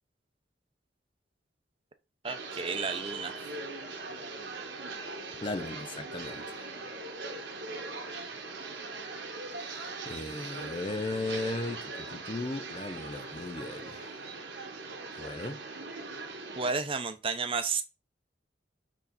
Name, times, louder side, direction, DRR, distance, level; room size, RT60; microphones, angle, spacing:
voice 1, 2.2-3.3 16.5-17.8, right 4 dB, 30° right, 0.8 m, -32 dB
sound 1, 2.2-16.7, right 3 dB, 70° right, 1.5 m, -40 dB
voice 2, 5.4-6.7 9.5-14.2 15.2-15.6, left 2 dB, 30° left, 0.5 m, -37 dB
6.1 x 4.0 x 4.2 m
head